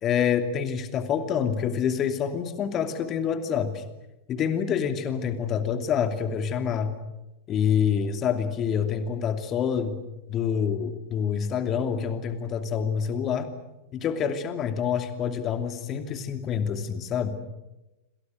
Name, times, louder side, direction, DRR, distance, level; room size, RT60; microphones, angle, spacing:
voice 1, 0.0-3.8 4.3-6.9 7.5-9.9 10.3-13.5 13.9-17.3, left 7 dB, 30° left, 8 dB, 2.8 m, -27 dB
29.0 x 26.5 x 6.5 m, 0.97 s
figure-of-eight pair, 90°, 0 cm